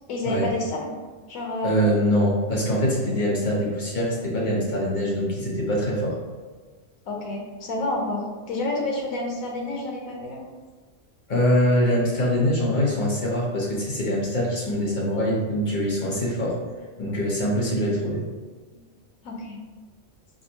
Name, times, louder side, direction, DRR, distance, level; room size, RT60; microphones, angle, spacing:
voice 1, 0.1-1.0 1.3-1.9 7.1-10.5 19.2-19.6, left 2 dB, 90° left, 0 dB, 1.2 m, -29 dB
voice 2, 1.6-6.1 11.3-16.6 17.0-18.2, equal, 40° left, -5 dB, 1.0 m, -23 dB
5.1 x 2.1 x 2.8 m, 1.4 s
omnidirectional pair, 1.4 m